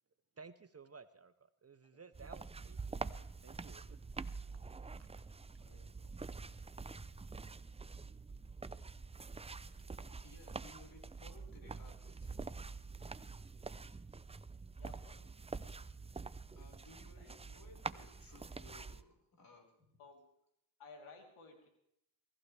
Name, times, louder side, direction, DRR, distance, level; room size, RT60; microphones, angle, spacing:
voice 1, 0.4-4.0 5.0-5.1, right 5 dB, 30° right, 12 dB, 0.8 m, -57 dB
sound 1, 2.1-19.0, right 4 dB, 15° right, 0.5 m, -46 dB
voice 2, 5.6-6.1 14.7-15.2 17.2-17.6 20.0-20.3 20.8-21.7, left 3 dB, 75° left, 2 dB, 3.6 m, -58 dB
voice 3, 10.0-12.4 16.5-19.8, left 2 dB, 45° left, 1 dB, 5.2 m, -60 dB
23.0 x 15.0 x 3.4 m, 0.76 s
cardioid pair, 75°, 50 cm